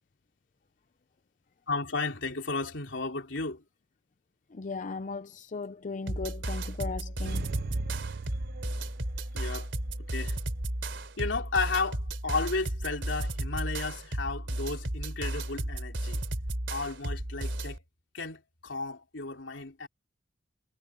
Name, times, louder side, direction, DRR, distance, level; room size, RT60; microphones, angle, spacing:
voice 1, 1.7-3.6 9.3-9.7 10.1-10.4 11.2-16.2 16.7-17.8 18.1-19.9, left 3 dB, 75° left, 3.4 m, -33 dB
voice 2, 4.5-7.5, left 4 dB, 40° left, 0.5 m, -37 dB
sound 1, 6.1-17.8, right 1 dB, 70° right, 3.5 m, -34 dB
sound 2, 7.2-9.4 9.7-9.8, right 4 dB, 55° right, 0.4 m, -38 dB
head